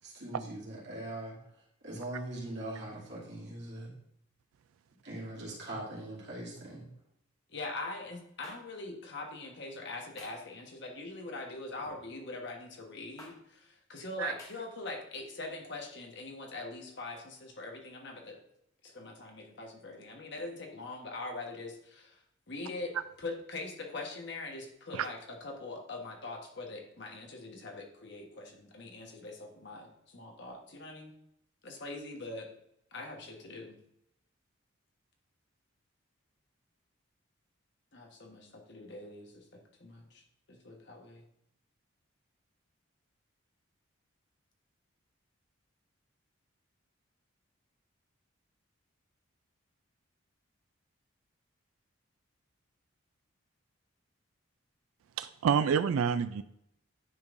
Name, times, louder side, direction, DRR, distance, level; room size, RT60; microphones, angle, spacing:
voice 1, 0.0-3.9 5.0-6.9, right 1 dB, 55° right, -5 dB, 2.5 m, -41 dB
voice 2, 7.5-18.4 18.8-31.1 31.6-32.5 32.9-33.8 37.9-41.2, left 2 dB, 55° left, 2 dB, 1.2 m, -43 dB
sound 1, 8.4-8.6 10.2-10.5 11.8-12.1 13.2-13.3 14.4-14.5, left 1 dB, 15° left, 1.1 m, -50 dB
voice 3, 55.2-56.4, right 7 dB, 85° right, 13 dB, 0.3 m, -28 dB
9.7 x 5.3 x 2.6 m, 0.76 s
head